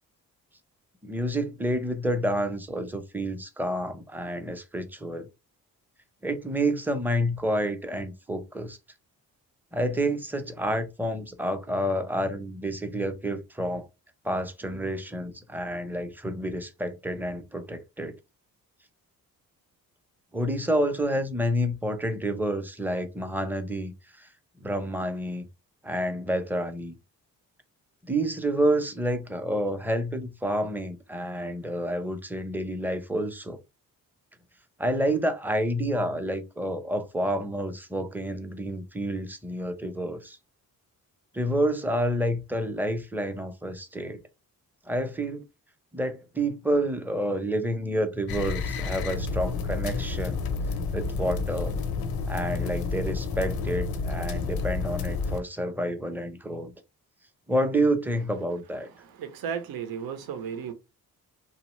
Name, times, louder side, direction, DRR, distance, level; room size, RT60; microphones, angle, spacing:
voice 1, 1.0-5.3 6.2-8.8 9.7-13.9 14.2-18.1 20.3-24.3 24.6-25.5 25.8-26.9 28.0-33.6 34.8-40.4 41.3-44.2 44.9-45.4 45.9-50.4 50.9-51.7 52.3-56.7 57.5-58.9, right 1 dB, 5° right, 0.5 m, -29 dB
sound 1, 48.3-55.4, left 4 dB, 80° left, 0.6 m, -30 dB
voice 2, 59.0-60.7, right 7 dB, 75° right, 0.7 m, -34 dB
2.7 x 2.0 x 3.0 m
cardioid pair, 70°, 36 cm